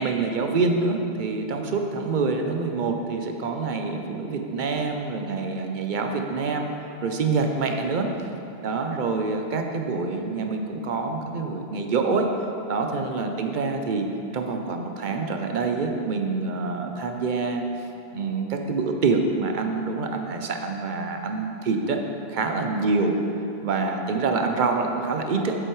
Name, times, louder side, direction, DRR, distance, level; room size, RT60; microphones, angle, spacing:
voice 1, 0.0-6.7 7.0-8.1 8.6-12.3 12.7-14.1 14.3-17.6 18.1-22.0 22.3-23.1 23.6-25.6, right 4 dB, 55° right, 4 dB, 0.7 m, -26 dB
7.8 x 7.7 x 3.1 m, 2.7 s
omnidirectional pair, 1.1 m